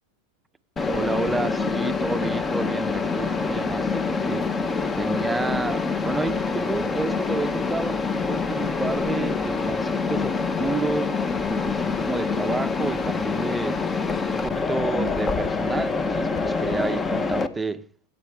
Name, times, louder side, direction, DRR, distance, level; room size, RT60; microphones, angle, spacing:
Mechanisms, 0.8-17.5, left 4 dB, 20° left, 1.0 m, -26 dB
voice 1, 0.8-4.5 4.9-11.2 11.5-14.0 14.3-17.9, right 3 dB, 10° right, 0.8 m, -30 dB
17.0 x 8.3 x 3.5 m
hypercardioid pair, 110°, 0 cm